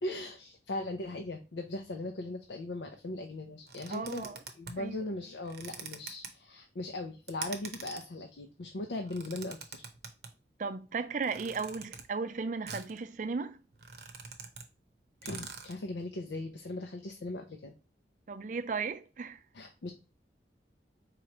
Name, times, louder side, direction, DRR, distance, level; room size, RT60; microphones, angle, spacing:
voice 1, 0.0-9.8 15.2-17.7 19.5-19.9, left 2 dB, 90° left, 0.6 m, -39 dB
sound 1, 3.7-4.8 5.4-6.3 7.3-8.1 8.9-10.3 11.2-12.0 12.7-13.0 13.3-13.4 13.7-14.7 14.9-15.0 15.2-15.8, right 6 dB, 70° right, 0.8 m, -44 dB
voice 2, 3.9-4.4 4.8-5.0 10.6-13.6 18.3-19.4, right 4 dB, 45° right, 0.4 m, -35 dB
4.7 x 3.0 x 2.9 m
head